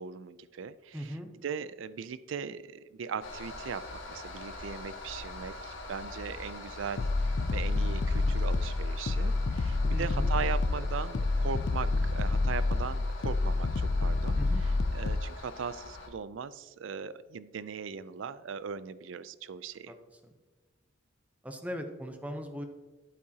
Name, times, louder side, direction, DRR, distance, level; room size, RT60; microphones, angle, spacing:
voice 1, 0.0-19.9, right 6 dB, 75° right, 16 dB, 0.4 m, -39 dB
voice 2, 0.9-1.3 9.9-10.3 10.7-10.8 14.4-14.6 19.9-20.0 20.2-20.3 21.4-22.7, equal, 5° right, 6 dB, 0.8 m, -38 dB
sound 1, 3.2-16.1, left 2 dB, 80° left, 1.7 m, -44 dB
sound 2, 7.0-15.3, left 3 dB, 55° left, 0.4 m, -28 dB
11.5 x 8.4 x 2.9 m, 1.3 s
head